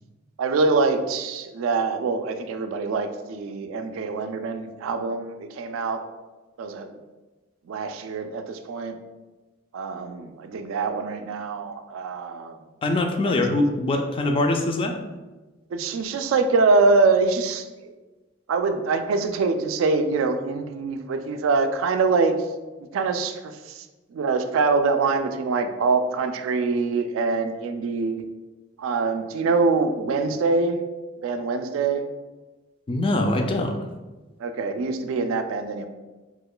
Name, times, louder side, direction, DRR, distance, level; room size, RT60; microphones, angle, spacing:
voice 1, 0.4-6.0 6.6-6.9 7.7-9.0 9.7-12.6 13.2-13.4 15.7-17.9 18.5-22.3 22.9-23.9 24.1-28.2 28.8-30.8 31.2-32.0 34.4-35.9, right 4 dB, 80° right, 8 dB, 0.3 m, -24 dB
voice 2, 12.8-15.0 32.9-33.8, left 2 dB, 25° left, 4 dB, 0.3 m, -23 dB
3.0 x 2.2 x 3.7 m, 1.2 s
head